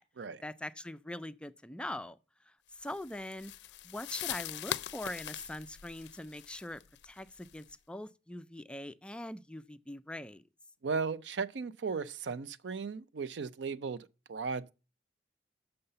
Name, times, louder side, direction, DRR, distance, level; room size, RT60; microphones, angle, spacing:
voice 1, 0.4-2.2 2.5-3.5 3.8-10.4, left 1 dB, 5° left, 0.3 m, -42 dB
sound 1, 2.8-7.7, left 11 dB, 70° left, 0.4 m, -42 dB
voice 2, 10.8-14.7, right 5 dB, 80° right, 0.5 m, -36 dB
6.6 x 5.6 x 6.6 m
head